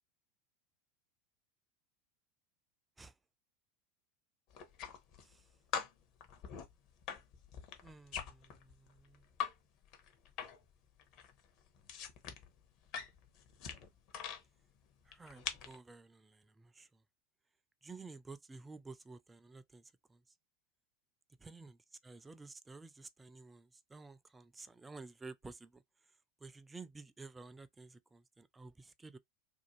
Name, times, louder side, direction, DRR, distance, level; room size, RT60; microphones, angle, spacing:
sound 1, 4.5-5.4 5.7-9.5 9.8-10.7 11.0-14.4 15.1-15.8, left 8 dB, 50° left, 0.8 m, -43 dB
voice 1, 7.8-9.2 15.1-16.9 17.8-19.8 20.1-20.2 21.4-21.8 22.0-25.8 26.4-29.2, right 3 dB, 15° right, 0.4 m, -52 dB
2.6 x 2.2 x 2.9 m
hypercardioid pair, 85°, 0 cm